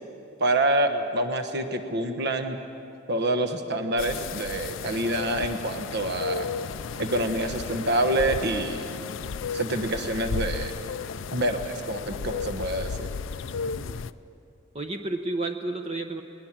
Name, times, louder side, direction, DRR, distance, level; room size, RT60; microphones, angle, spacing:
voice 1, 0.4-2.6 3.1-6.5 7.0-8.9 9.5-10.7 11.3-13.1, right 1 dB, 55° right, 7 dB, 1.2 m, -27 dB
sound 1, 4.0-14.1, left 5 dB, 65° left, 0.4 m, -34 dB
voice 2, 14.7-16.2, right 2 dB, 30° right, 6 dB, 0.8 m, -31 dB
21.0 x 20.5 x 7.5 m, 2.8 s
head